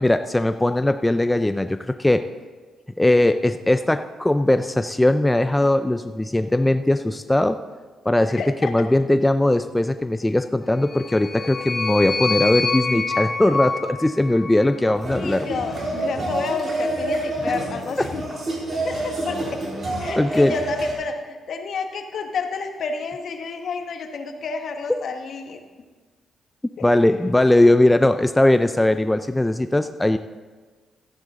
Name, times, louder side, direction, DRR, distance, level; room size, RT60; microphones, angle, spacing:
voice 1, 0.0-2.3 3.0-7.6 8.1-15.5 18.0-18.1 20.2-20.5 26.8-30.2, left 1 dB, 15° left, 9 dB, 0.4 m, -19 dB
voice 2, 8.3-8.7 15.1-18.2 18.8-19.6 20.0-25.6 26.8-26.9, left 4 dB, 65° left, 6 dB, 1.2 m, -30 dB
sound 1, 10.8-15.2, left 4 dB, 45° left, 1.5 m, -27 dB
sound 2, 15.0-20.9, right 2 dB, 45° right, 3.8 m, -28 dB
13.0 x 10.0 x 3.8 m, 1.4 s
supercardioid pair, 60°, 0 cm